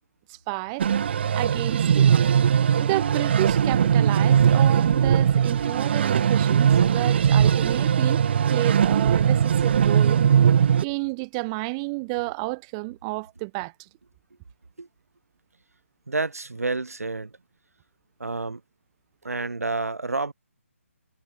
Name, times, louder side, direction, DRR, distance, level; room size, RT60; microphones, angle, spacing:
voice 1, 0.3-0.9 1.3-2.1 2.8-8.2 8.5-10.2 10.8-13.7, right 29 dB, 20° right, 0.9 m, -31 dB
sound 1, 0.8-10.8, right 8 dB, 45° right, 0.5 m, -20 dB
voice 2, 16.1-17.3 18.2-18.6 19.2-20.3, right 3 dB, 80° right, 2.4 m, -29 dB
figure-of-eight pair, 145°, 8 cm